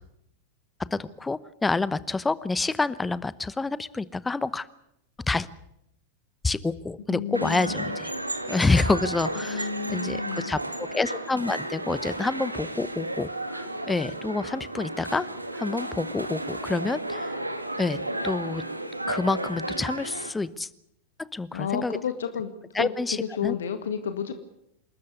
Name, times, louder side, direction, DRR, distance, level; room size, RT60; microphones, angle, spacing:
voice 1, 0.9-4.7 5.3-5.5 6.4-8.1 8.5-10.6 10.9-15.3 15.5-17.4 17.8-18.0 18.2-18.6 19.1-20.7 21.3-22.0 22.7-23.6, left 3 dB, 10° left, 18 dB, 0.9 m, -28 dB
voice 2, 7.1-8.0 9.4-10.5 21.5-22.5 22.8-24.3, left 7 dB, 65° left, 9 dB, 1.8 m, -31 dB
sound 1, 7.3-20.3, right 1 dB, 85° right, 1.8 m, -33 dB
28.0 x 13.5 x 9.7 m, 0.79 s
figure-of-eight pair, 90°, 0 cm